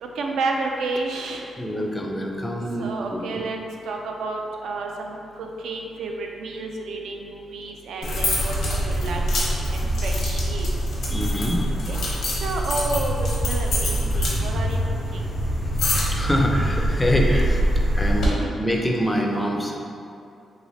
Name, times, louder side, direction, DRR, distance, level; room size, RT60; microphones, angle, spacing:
voice 1, 0.2-1.5 2.8-3.6 3.8-8.5 8.9-10.7 11.9-12.0 12.4-14.8 15.1-15.2 18.3-18.5, right 3 dB, 85° right, 1 dB, 0.3 m, -30 dB
voice 2, 1.6-3.4 11.1-11.7 15.6-19.8, equal, 10° left, 1 dB, 0.4 m, -25 dB
sound 1, 8.0-18.3, equal, 75° left, 0.8 m, -24 dB
3.1 x 2.8 x 2.7 m, 2.5 s
cardioid pair, 100°, 0 cm